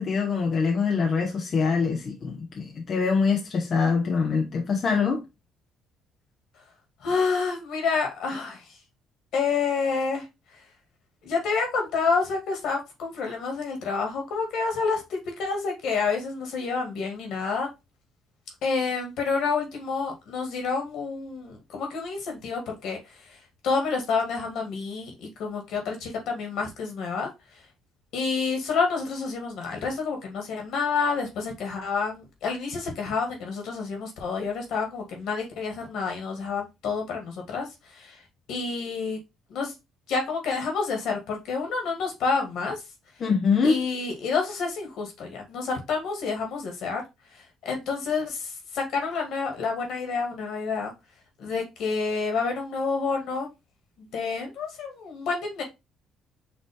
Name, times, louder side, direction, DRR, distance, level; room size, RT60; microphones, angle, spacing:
voice 1, 0.0-5.2 43.2-43.8, left 5 dB, 45° left, 0.8 m, -24 dB
voice 2, 7.0-8.8 9.3-10.3 11.2-17.7 18.6-23.4 23.6-27.3 28.1-38.2 38.5-39.2 39.5-39.7 40.1-42.8 43.6-47.0 47.3-50.9 51.4-53.5 54.0-55.6, left 4 dB, 70° left, 1.9 m, -29 dB
5.4 x 2.9 x 3.4 m
cardioid pair, 90°, 0 cm